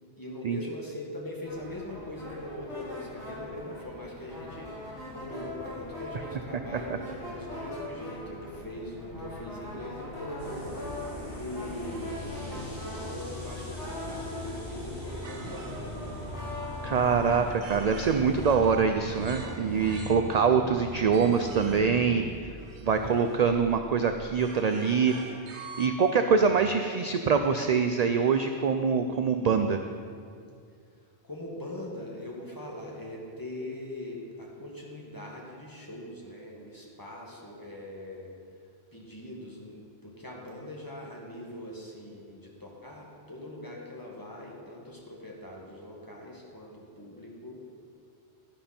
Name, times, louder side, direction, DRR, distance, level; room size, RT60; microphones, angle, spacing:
voice 1, 0.2-10.7 11.1-16.3 26.4-26.8 31.2-38.3 38.9-47.6, left 1 dB, 20° left, -3 dB, 1.9 m, -41 dB
sound 1, 1.4-17.7, left 1 dB, 80° left, 3.7 m, -41 dB
sound 2, 10.4-22.2, equal, 25° right, 3.4 m, -42 dB
sound 3, 15.2-25.9, right 3 dB, 85° right, 1.3 m, -44 dB
voice 2, 16.8-22.5 22.8-25.2 25.8-29.8, right 5 dB, 55° right, 7 dB, 0.5 m, -24 dB
12.0 x 10.5 x 4.4 m, 2.2 s
omnidirectional pair, 1.1 m